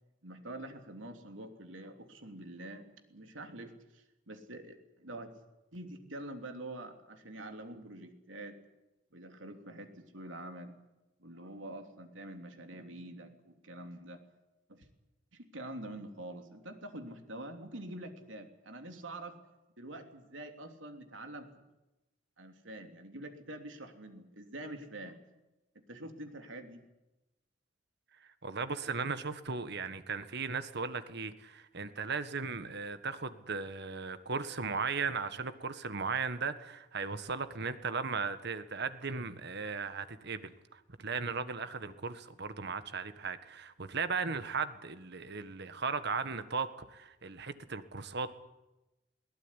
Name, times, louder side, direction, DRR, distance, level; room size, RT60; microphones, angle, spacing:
voice 1, 0.2-5.3 5.7-8.6 9.1-10.8 11.2-14.2 14.7-14.9 15.3-19.4 19.8-21.6 22.4-25.2 25.9-26.8, right 1 dB, 85° right, 5 dB, 3.2 m, -46 dB
voice 2, 28.4-48.3, right 4 dB, 60° right, 11 dB, 1.6 m, -37 dB
22.0 x 18.0 x 9.9 m, 0.99 s
head